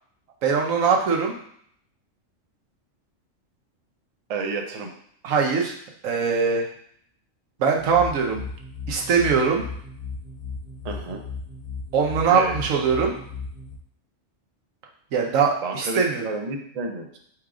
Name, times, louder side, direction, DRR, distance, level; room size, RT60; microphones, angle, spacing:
voice 1, 0.4-1.4 5.2-5.7 6.0-6.7 7.6-8.5 8.9-9.6 11.9-13.1 15.1-16.2, right 5 dB, 80° right, 0 dB, 1.2 m, -21 dB
voice 2, 4.3-4.9 10.8-11.2 12.3-12.5 15.6-17.2, right 3 dB, 45° right, 3 dB, 0.5 m, -30 dB
sound 1, 7.7-13.8, left 4 dB, 55° left, 1.1 m, -36 dB
4.6 x 2.4 x 4.8 m, 0.65 s
omnidirectional pair, 1.4 m